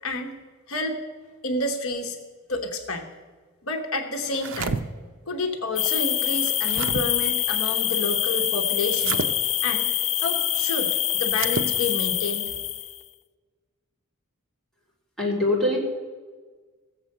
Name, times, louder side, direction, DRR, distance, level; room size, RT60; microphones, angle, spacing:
voice 1, 0.0-0.4 0.7-1.0 1.4-2.2 2.5-3.1 3.6-4.8 5.3-9.2 9.6-9.9 10.2-12.6, left 2 dB, 75° left, 4 dB, 1.1 m, -29 dB
sound 1, 4.3-4.8 6.3-7.0 8.9-9.3 11.3-11.7, right 5 dB, 65° right, 0.7 m, -30 dB
sound 2, 5.8-13.0, left 11 dB, 30° left, 0.3 m, -25 dB
voice 2, 15.2-15.8, left 1 dB, ahead, -6 dB, 3.4 m, -22 dB
15.5 x 7.6 x 6.6 m, 1.5 s
head